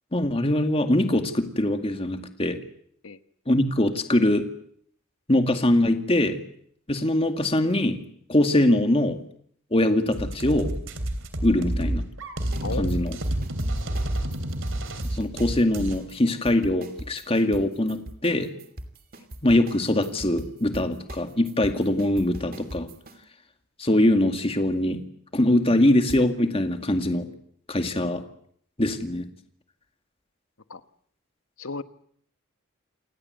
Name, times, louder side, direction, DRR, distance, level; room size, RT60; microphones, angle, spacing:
voice 1, 0.1-2.6 3.5-4.5 5.3-6.4 6.9-8.0 8.3-9.2 9.7-10.7 11.4-12.0 12.8-13.2 15.2-18.5 19.4-22.9 23.8-25.0 25.3-27.3 27.7-28.2 28.8-29.3, left 1 dB, 25° left, 7 dB, 2.2 m, -22 dB
sound 1, 10.1-16.0, right 1 dB, 65° right, 3.3 m, -29 dB
sound 2, 12.5-23.2 26.1-26.2, right 1 dB, 45° right, 2.7 m, -41 dB
voice 2, 12.6-13.2 30.7-30.8 31.6-31.8, left 4 dB, 75° left, 11 dB, 1.3 m, -34 dB
28.5 x 19.5 x 8.0 m, 0.66 s
head